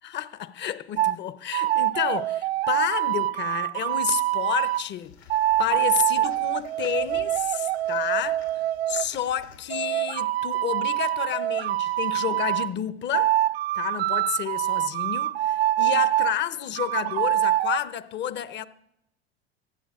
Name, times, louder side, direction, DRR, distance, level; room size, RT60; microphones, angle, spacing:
voice 1, 0.0-5.1 5.6-8.4 8.9-13.4 13.8-18.7, left 11 dB, 35° left, 1.0 m, -30 dB
sound 1, 1.0-1.2 1.5-4.8 5.3-9.0 9.7-12.7 13.1-16.3 16.8-17.8, right 14 dB, 70° right, 0.5 m, -25 dB
sound 2, 4.7-9.9, left 7 dB, 80° left, 3.0 m, -52 dB
25.5 x 8.6 x 3.7 m
figure-of-eight pair, 75°, 32 cm